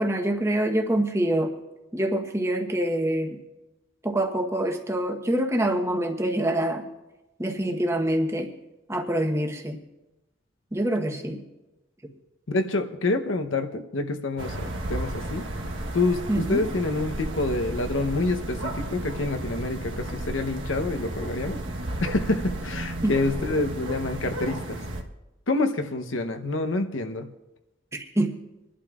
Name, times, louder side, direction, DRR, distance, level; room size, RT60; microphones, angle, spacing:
voice 1, 0.0-1.5 1.9-3.4 4.0-6.9 7.4-8.5 8.9-9.8 10.7-11.4 16.3-16.6 23.0-23.2 27.9-28.4, right 1 dB, 15° right, 2 dB, 1.1 m, -25 dB
voice 2, 12.5-15.4 15.9-21.6 22.0-24.8 25.5-27.3, left 2 dB, 90° left, 6 dB, 0.9 m, -27 dB
sound 1, 14.4-25.0, right 1 dB, 85° right, 1.3 m, -34 dB
sound 2, 17.0-23.5, right 1 dB, 50° right, 0.7 m, -40 dB
26.0 x 11.5 x 2.5 m, 1.0 s
head